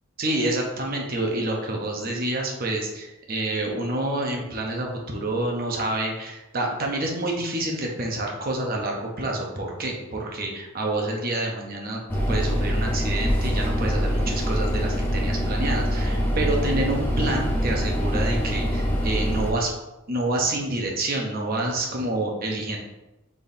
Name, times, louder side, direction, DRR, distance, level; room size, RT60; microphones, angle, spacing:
voice 1, 0.2-12.0 12.3-19.7 20.1-22.8, right 2 dB, 40° right, 0 dB, 0.7 m, -28 dB
Air Vent, 12.1-19.5, equal, 10° left, 0.4 m, -24 dB
4.2 x 3.5 x 2.6 m, 0.99 s
head